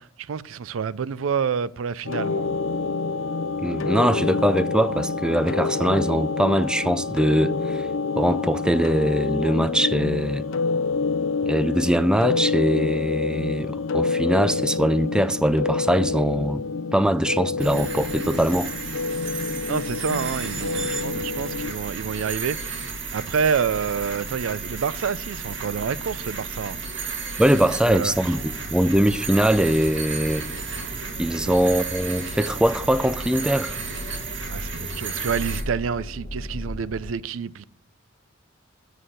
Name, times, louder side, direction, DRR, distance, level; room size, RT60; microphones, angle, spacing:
voice 1, 0.0-2.5 19.7-22.8 23.1-26.8 27.6-28.1 31.5-31.6 34.5-37.7, right 6 dB, 85° right, 0.4 m, -28 dB
sound 1, 2.1-21.7, left 4 dB, 75° left, 0.5 m, -27 dB
voice 2, 3.6-7.9 8.2-10.5 11.4-16.7 16.9-18.7 27.4-30.5 31.2-33.8, equal, 5° right, 0.3 m, -22 dB
sound 2, 17.6-35.6, right 5 dB, 65° right, 1.8 m, -33 dB
sound 3, 27.5-37.1, left 1 dB, 50° left, 1.1 m, -38 dB
7.2 x 6.5 x 7.6 m
head